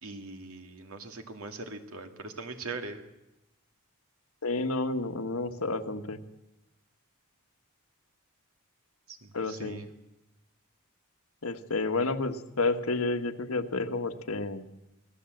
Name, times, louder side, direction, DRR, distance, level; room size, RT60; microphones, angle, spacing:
voice 1, 0.0-3.1 9.1-9.9, right 3 dB, 85° right, 6 dB, 2.3 m, -41 dB
voice 2, 4.4-6.2 9.3-9.8 11.4-14.6, left 3 dB, 90° left, 7 dB, 1.5 m, -30 dB
25.0 x 17.0 x 7.9 m, 0.96 s
head